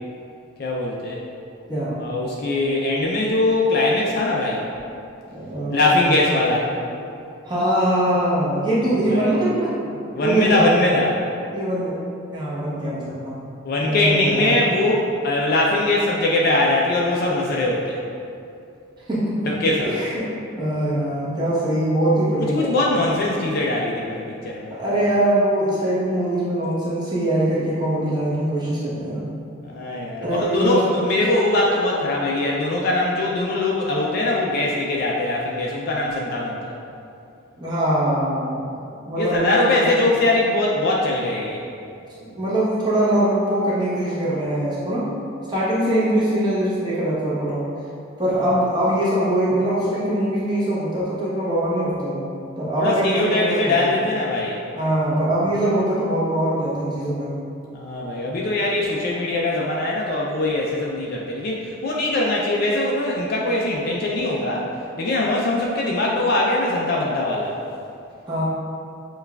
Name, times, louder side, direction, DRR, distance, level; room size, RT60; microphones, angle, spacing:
voice 1, 0.6-1.2 2.0-4.6 5.7-6.7 9.1-9.3 10.1-11.2 13.6-18.0 19.6-19.9 22.5-24.8 29.6-36.7 39.2-41.6 52.8-54.6 57.7-64.7 65.0-67.6, left 2 dB, 45° left, -3 dB, 0.3 m, -21 dB
voice 2, 5.3-6.2 7.5-9.9 10.2-10.7 11.5-11.9 12.3-13.4 13.8-14.6 19.1-20.2 20.6-23.0 24.7-29.3 30.2-30.9 37.6-38.7 39.0-39.9 42.2-45.1 45.5-47.7 48.2-52.3 52.6-53.8 54.7-57.4 68.3-68.4, right 1 dB, 20° right, -9 dB, 0.9 m, -22 dB
6.7 x 2.3 x 2.2 m, 2.6 s
head